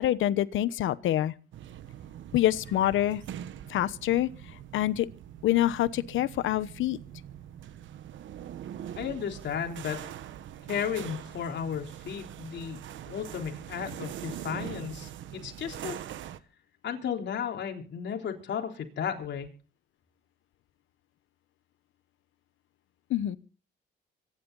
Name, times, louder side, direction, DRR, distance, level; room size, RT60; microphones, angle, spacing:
voice 1, 0.0-1.3 2.3-3.2 3.7-4.3 4.7-5.1 5.4-7.0 23.1-23.4, left 13 dB, 80° left, 1.0 m, -26 dB
sound 1, 1.5-16.4, right 10 dB, 75° right, 1.2 m, -43 dB
voice 2, 9.0-10.1 10.7-12.8 13.1-16.0 16.8-19.5, left 8 dB, 65° left, 3.8 m, -34 dB
25.0 x 11.0 x 4.0 m
cardioid pair, 90°, 20 cm